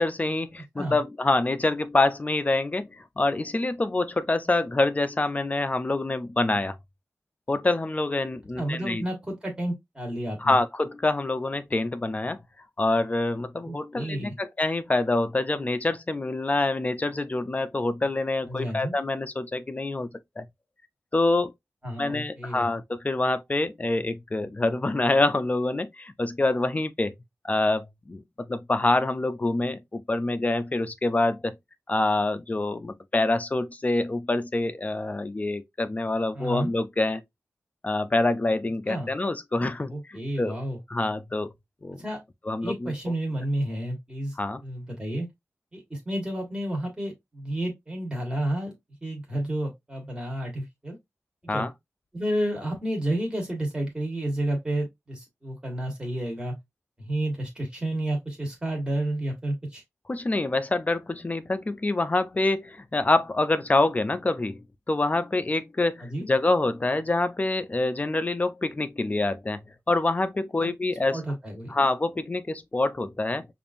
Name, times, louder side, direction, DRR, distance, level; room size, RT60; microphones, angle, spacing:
voice 1, 0.0-6.8 7.5-9.0 10.4-12.4 12.8-20.1 20.4-20.5 21.1-21.5 22.0-27.1 27.4-31.5 31.9-37.2 37.8-40.6 40.9-41.5 41.8-42.0 42.5-42.9 44.4-44.6 51.5-51.7 60.1-64.6 64.9-69.6 69.9-71.2 71.7-73.5, left 2 dB, 30° left, 0.4 m, -26 dB
voice 2, 8.6-10.6 13.6-14.3 18.5-18.9 21.8-22.7 36.3-36.7 38.9-39.1 39.9-40.8 42.0-42.2 42.6-44.4 44.6-45.3 45.7-48.7 49.0-51.0 51.4-51.6 52.1-56.5 57.0-59.8 66.0-66.3 70.6-70.7 71.1-71.8, right 1 dB, 20° right, 1.5 m, -31 dB
5.1 x 2.6 x 2.5 m
wide cardioid pair, 85°, 5 cm